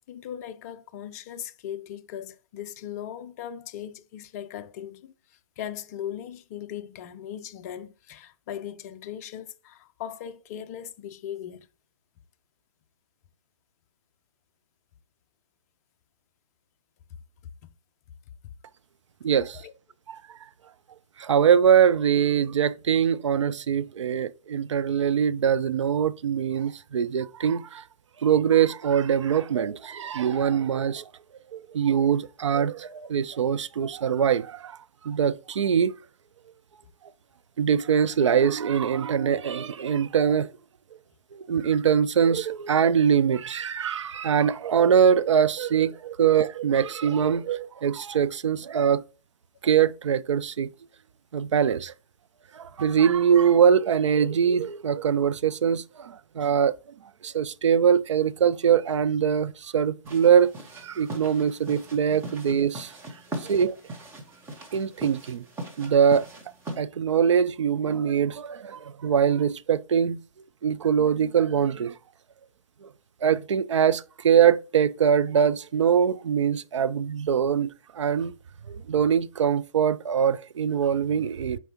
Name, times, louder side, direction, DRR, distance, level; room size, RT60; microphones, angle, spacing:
voice 1, 0.0-11.7 17.6-17.7 19.6-19.7, left 10 dB, 30° left, 0.5 m, -38 dB
voice 2, 19.2-19.6 20.1-20.2 21.2-27.8 28.2-31.1 31.5-34.8 35.0-35.9 37.6-40.5 41.3-49.0 49.6-50.7 51.3-51.9 52.5-56.7 57.2-62.9 63.4-63.7 64.7-65.4 65.8-66.3 66.8-70.2 70.6-72.0 72.8-72.9 73.2-77.7 77.9-78.3 78.7-81.6, right 8 dB, 60° right, 0.5 m, -23 dB
sound 1, 60.0-66.8, right 1 dB, 15° right, 1.1 m, -40 dB
7.9 x 4.6 x 2.9 m
figure-of-eight pair, 130°, 17 cm